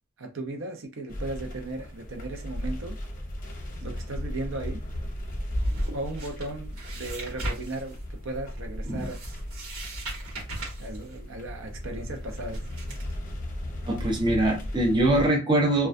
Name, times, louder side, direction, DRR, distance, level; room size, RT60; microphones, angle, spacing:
voice 1, 0.2-3.0 3.8-4.8 5.9-9.2 10.8-12.7, right 2 dB, 65° right, 0.6 m, -36 dB
sound 1, 1.1-15.3, left 1 dB, 40° left, 0.6 m, -37 dB
sound 2, 4.8-13.1, equal, 85° right, 1.1 m, -36 dB
voice 2, 13.9-15.9, right 1 dB, 20° right, 0.5 m, -23 dB
2.2 x 2.2 x 2.5 m
head